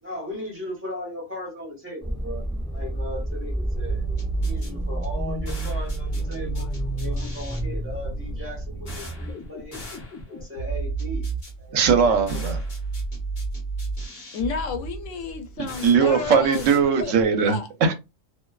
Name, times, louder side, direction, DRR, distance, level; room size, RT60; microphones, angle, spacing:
voice 1, 0.0-2.4 2.7-4.1 4.4-9.8 10.3-11.3 11.6-12.5, equal, 10° right, 0.9 m, -37 dB
sound 1, 2.0-9.3, equal, 5° left, 0.4 m, -31 dB
sound 2, 3.8-17.4, right 3 dB, 40° left, 0.9 m, -32 dB
voice 2, 11.7-12.6 15.6-17.9, right 6 dB, 75° right, 0.9 m, -20 dB
voice 3, 14.3-16.6 17.0-17.1 17.4-17.7, left 5 dB, 80° left, 0.9 m, -31 dB
2.5 x 2.2 x 2.2 m
omnidirectional pair, 1.3 m